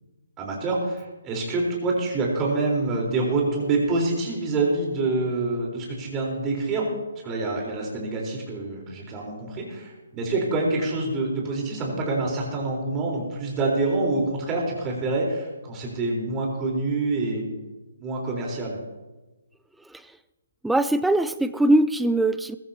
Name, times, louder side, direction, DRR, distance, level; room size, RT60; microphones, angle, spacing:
voice 1, 0.4-6.9 7.2-17.5 18.0-18.8, right 3 dB, 20° right, -2 dB, 4.0 m, -26 dB
voice 2, 20.6-22.6, right 1 dB, 5° right, 12 dB, 0.4 m, -21 dB
21.5 x 14.0 x 2.9 m, 1.1 s
figure-of-eight pair, 135°, 0 cm